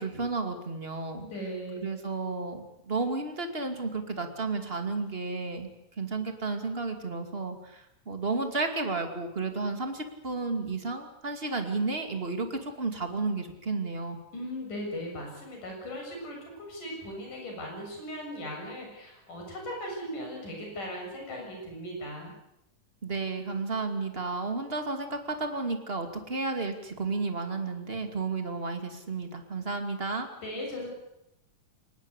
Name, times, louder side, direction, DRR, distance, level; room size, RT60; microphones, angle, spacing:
voice 1, 0.0-1.3 1.8-5.7 6.0-14.2 23.0-30.3, right 3 dB, 20° right, 6 dB, 2.3 m, -32 dB
voice 2, 1.2-1.9 14.3-22.3 30.4-30.9, equal, 75° left, 1 dB, 8.7 m, -38 dB
24.5 x 19.5 x 8.2 m, 0.82 s
omnidirectional pair, 3.7 m